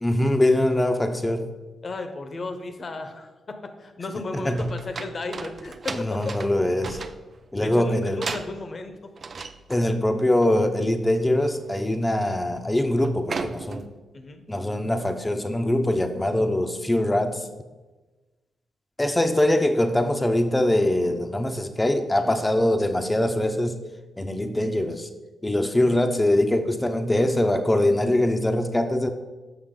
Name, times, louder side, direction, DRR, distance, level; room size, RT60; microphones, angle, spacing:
voice 1, 0.0-1.5 4.4-4.7 5.9-7.0 7.5-8.3 9.7-13.8 14.5-17.5 19.0-23.8 24.2-25.1 25.4-29.1, left 1 dB, 20° left, 7 dB, 0.8 m, -23 dB
voice 2, 1.8-6.2 7.6-9.0 14.1-14.5 22.2-22.4, left 3 dB, 50° left, 7 dB, 1.0 m, -34 dB
sound 1, 4.6-7.5 8.2-8.8 9.2-9.9 10.2-10.5 10.8-11.0 11.4-11.8 12.1-12.6 12.9-14.0, right 4 dB, 55° right, 0.4 m, -36 dB
7.1 x 5.8 x 3.8 m, 1.2 s
supercardioid pair, 50°, 0 cm